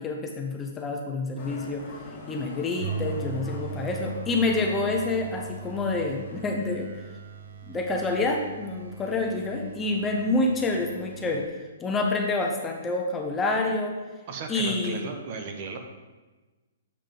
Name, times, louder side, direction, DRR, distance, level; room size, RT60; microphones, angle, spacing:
voice 1, 0.0-1.8 2.3-7.0 7.6-11.5 11.8-14.0 14.5-15.0, left 2 dB, 10° left, 1 dB, 0.5 m, -27 dB
Motorcycle, 1.4-6.4, left 2 dB, 30° left, 1.9 m, -43 dB
sound 1, 2.8-11.5, right 6 dB, 75° right, 0.7 m, -39 dB
voice 2, 14.3-15.8, right 4 dB, 35° right, 5 dB, 0.7 m, -35 dB
7.5 x 3.6 x 5.1 m, 1.2 s
hypercardioid pair, 165°, 0 cm